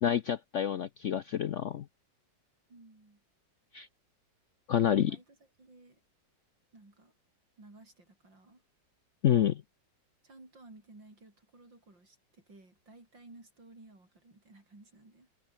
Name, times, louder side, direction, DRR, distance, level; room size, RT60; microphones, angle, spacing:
voice 1, 0.0-1.9 3.7-3.9 4.7-5.2 9.2-9.6, left 9 dB, 65° left, 0.7 m, -28 dB
voice 2, 2.7-3.2 4.9-6.0 6.7-7.1 7.6-8.6 10.2-15.3, right 2 dB, 80° right, 7.8 m, -56 dB
omnidirectional pair, 2.0 m